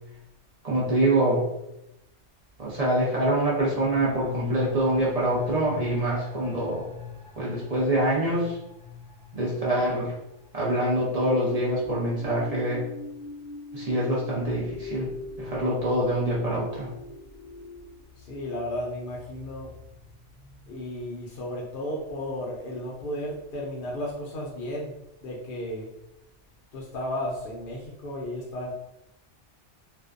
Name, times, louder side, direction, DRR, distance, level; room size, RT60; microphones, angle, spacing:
voice 1, 0.6-1.4 2.6-6.9 7.4-8.6 9.3-10.1 10.5-12.9 13.7-15.1 15.4-16.9, right 1 dB, 40° right, -6 dB, 0.6 m, -25 dB
sound 1, 3.7-12.6 12.9-13.0, left 5 dB, 70° right, 1.1 m, -41 dB
sound 2, 10.9-18.0, left 2 dB, 20° right, 1.0 m, -42 dB
voice 2, 18.2-19.7 20.4-24.9 25.2-25.9 26.7-28.7, left 1 dB, 60° left, -3 dB, 0.6 m, -34 dB
2.5 x 2.1 x 2.4 m, 0.87 s
omnidirectional pair, 1.2 m